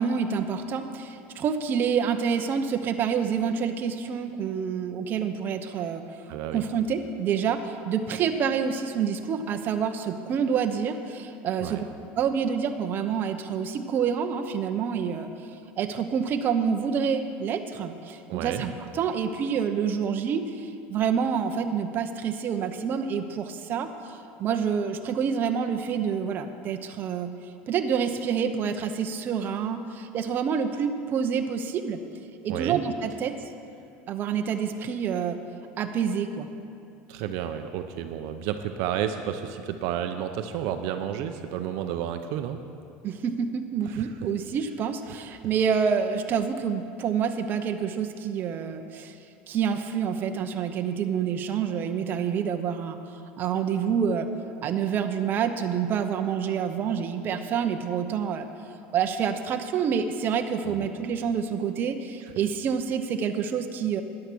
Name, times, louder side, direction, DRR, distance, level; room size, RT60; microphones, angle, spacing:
voice 1, 0.0-11.8 12.2-15.3 15.8-27.3 27.7-32.0 32.4-33.4 34.1-35.4 35.8-36.5 43.0-49.2 49.5-53.0 53.4-54.3 54.6-58.5 58.9-64.0, right 7 dB, 35° right, 6 dB, 0.8 m, -27 dB
voice 2, 6.3-6.6 11.6-11.8 18.3-18.6 32.5-32.8 37.1-42.6 43.9-44.1 45.1-45.2 60.6-60.9, right 10 dB, 65° right, 7 dB, 0.7 m, -31 dB
12.5 x 9.8 x 6.2 m, 2.6 s
supercardioid pair, 140°, 6 cm